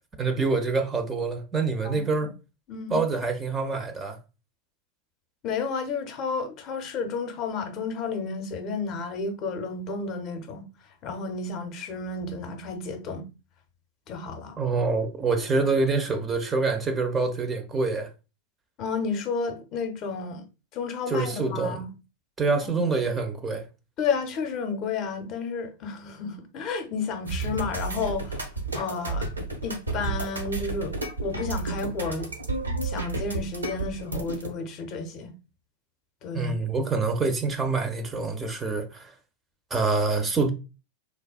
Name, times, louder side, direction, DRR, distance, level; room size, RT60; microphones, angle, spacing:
voice 1, 0.2-2.3 2.9-4.2 14.6-18.1 21.1-21.8 22.4-23.7 36.3-39.1 39.7-40.5, right 3 dB, 15° right, 0.4 m, -26 dB
voice 2, 1.8-2.3 2.7-3.0 5.4-10.7 11.0-13.3 14.1-14.6 18.8-20.4 20.7-21.9 22.6-22.8 24.0-28.5 28.7-29.3 29.6-30.9 31.2-32.3 32.8-35.3 36.2-36.6, left 4 dB, 40° left, 0.5 m, -31 dB
sound 1, 27.3-34.5, right 3 dB, 80° right, 0.6 m, -31 dB
3.3 x 2.2 x 2.3 m
figure-of-eight pair, 90°, 0 cm